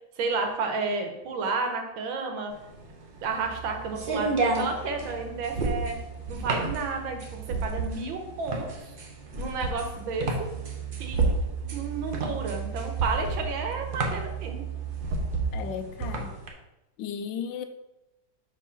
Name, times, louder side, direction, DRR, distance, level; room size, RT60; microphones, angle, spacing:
voice 1, 0.0-2.5 3.2-6.0 6.3-8.7 9.4-10.5 11.0-11.3 11.7-14.7, right 4 dB, 85° right, 4 dB, 1.7 m, -31 dB
sound 1, 2.6-16.5, right 3 dB, 50° right, 0.6 m, -30 dB
sound 2, 3.3-15.7, right 11 dB, 50° left, 1.0 m, -39 dB
voice 2, 15.5-16.3 17.0-17.6, left 7 dB, 80° left, 9 dB, 1.3 m, -34 dB
5.2 x 3.6 x 5.7 m, 0.94 s
omnidirectional pair, 2.1 m